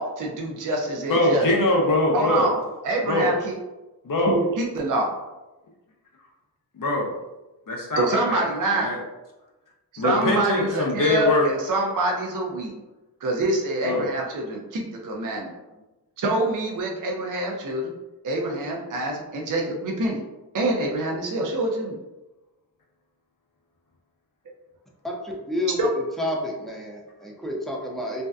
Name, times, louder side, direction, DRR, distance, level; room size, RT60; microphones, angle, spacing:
voice 1, 0.0-1.4 2.1-2.6 2.8-3.6 4.3-5.1 8.0-8.9 9.9-12.7 13.2-15.5 16.2-17.9 18.2-20.2 20.5-22.0 25.8-25.9, right 2 dB, 55° right, 0 dB, 0.5 m, -26 dB
voice 2, 1.1-2.5 3.0-3.4 4.0-4.4 6.7-7.1 7.7-8.5 8.7-9.0 10.0-11.5 13.8-14.1, left 2 dB, 55° left, -1 dB, 0.5 m, -22 dB
voice 3, 25.0-25.9 26.2-28.2, left 1 dB, ahead, -2 dB, 0.5 m, -30 dB
2.6 x 2.1 x 2.3 m, 1.1 s
wide cardioid pair, 75°, 39 cm